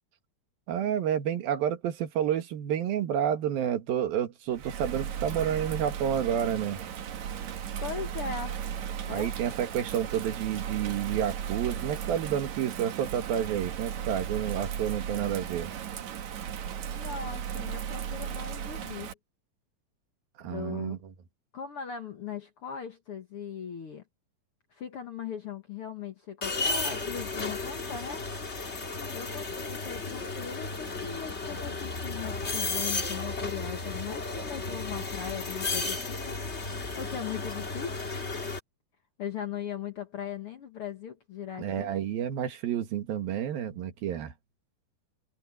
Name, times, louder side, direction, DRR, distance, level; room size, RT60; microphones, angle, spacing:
voice 1, 0.7-6.8 9.1-15.7 20.4-21.0 41.6-44.3, right 9 dB, 85° right, 3.6 m, -30 dB
Bird vocalization bird call bird song / Rain, 4.5-19.1, right 8 dB, 60° right, 2.5 m, -36 dB
voice 2, 7.8-8.6 9.1-9.3 16.9-19.1 20.5-21.0 21.5-24.0 24.7-28.2 29.1-36.4 36.9-38.0 39.2-41.9, left 8 dB, 60° left, 1.6 m, -39 dB
sound 1, 26.4-38.6, left 3 dB, 25° left, 1.5 m, -34 dB
omnidirectional pair, 4.1 m